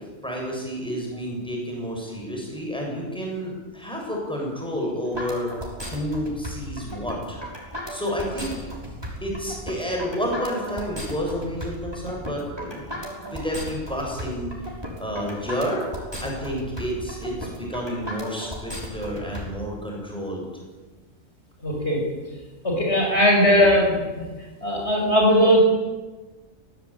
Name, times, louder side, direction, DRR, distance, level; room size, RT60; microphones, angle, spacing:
voice 1, 0.2-5.5 5.9-7.4 7.9-8.5 9.2-14.5 15.0-15.8 16.2-20.5 24.7-24.8, equal, 5° left, -1 dB, 7.7 m, -30 dB
sound 1, 5.1-19.4, equal, 20° right, 5.7 m, -35 dB
voice 2, 21.6-22.0 22.6-24.0 24.6-25.6, equal, 55° left, -1 dB, 6.3 m, -18 dB
24.0 x 17.5 x 9.0 m, 1.2 s
omnidirectional pair, 1.3 m